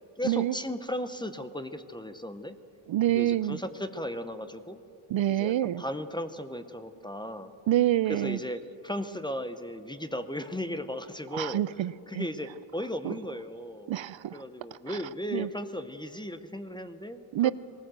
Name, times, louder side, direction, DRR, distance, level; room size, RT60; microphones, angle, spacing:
voice 1, 0.2-2.6 3.1-4.8 5.3-7.5 8.0-11.6 12.1-13.9 14.3-17.5, left 1 dB, 10° left, 10 dB, 0.7 m, -36 dB
voice 2, 2.9-3.6 5.1-5.8 7.7-8.4 11.3-12.3 13.0-13.1 13.9-14.4 15.3-15.5 17.3-17.5, right 13 dB, 65° right, 18 dB, 0.5 m, -26 dB
19.5 x 18.5 x 7.6 m, 2.7 s
wide cardioid pair, 145°, 50 cm